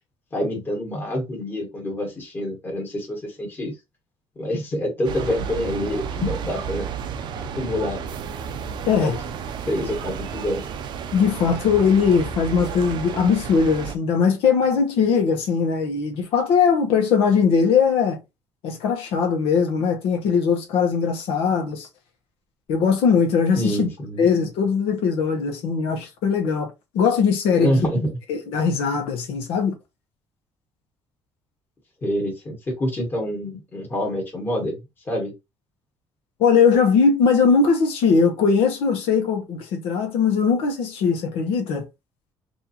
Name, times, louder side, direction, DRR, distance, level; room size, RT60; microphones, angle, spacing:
voice 1, 0.3-3.7 4.3-6.9 7.5-8.0 8.9-9.1 9.6-10.6 23.5-24.2 27.5-28.1 32.0-34.7 35.1-35.3, equal, 20° left, 1.6 m, -26 dB
sound 1, 5.0-13.9, right 7 dB, 50° right, 0.5 m, -32 dB
voice 2, 8.9-9.2 11.1-18.2 18.6-21.9 22.7-23.9 24.2-27.7 28.3-29.7 36.4-41.9, left 6 dB, 75° left, 1.1 m, -20 dB
4.2 x 2.7 x 2.8 m
cardioid pair, 165°, 10 cm